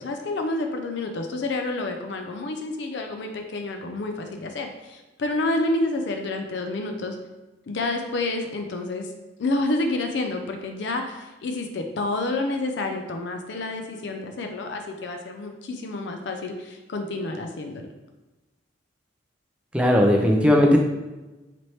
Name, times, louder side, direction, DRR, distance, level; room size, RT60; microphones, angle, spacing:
voice 1, 0.0-7.2 7.7-9.1 9.4-17.9, left 2 dB, 65° left, 4 dB, 0.4 m, -29 dB
voice 2, 19.7-20.8, left 1 dB, 5° right, 1 dB, 0.4 m, -17 dB
4.2 x 3.0 x 3.1 m, 1.1 s
head